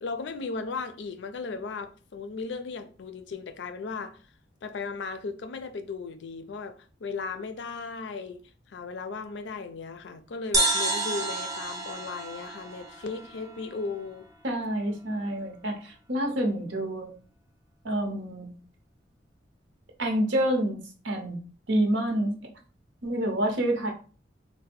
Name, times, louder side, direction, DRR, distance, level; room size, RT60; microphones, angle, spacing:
voice 1, 0.0-4.2 4.6-8.4 8.7-14.3, left 4 dB, 70° left, 0.4 m, -36 dB
sound 1, 10.5-14.1, right 2 dB, 20° right, 0.5 m, -30 dB
voice 2, 14.4-17.1 17.8-18.5 20.0-20.8 21.0-21.4 21.7-22.4 23.0-23.9, right 1 dB, 90° right, 0.8 m, -27 dB
3.2 x 2.1 x 3.4 m
head